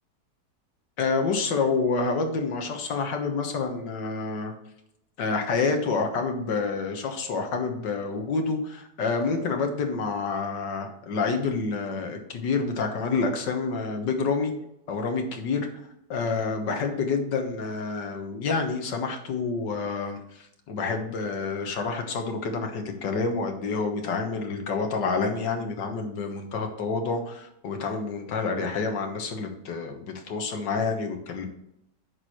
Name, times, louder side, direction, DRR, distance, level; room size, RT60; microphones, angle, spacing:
voice 1, 1.0-4.5 5.2-14.5 14.9-15.7 16.1-31.5, left 4 dB, 80° left, 4 dB, 1.9 m, -28 dB
9.5 x 6.5 x 3.1 m, 0.80 s
omnidirectional pair, 1.9 m